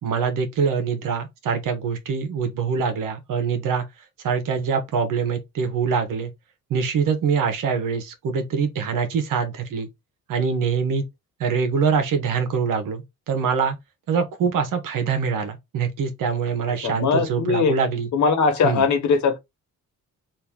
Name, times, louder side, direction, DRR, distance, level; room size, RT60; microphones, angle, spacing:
voice 1, 0.0-3.8 4.2-6.3 6.7-9.9 10.3-11.0 11.4-13.8 14.1-18.1 18.6-18.8, right 6 dB, 75° right, 1.1 m, -24 dB
voice 2, 16.8-17.8 18.1-19.4, left 5 dB, 60° left, 1.2 m, -20 dB
2.9 x 2.7 x 3.6 m
cardioid pair, 100°, 32 cm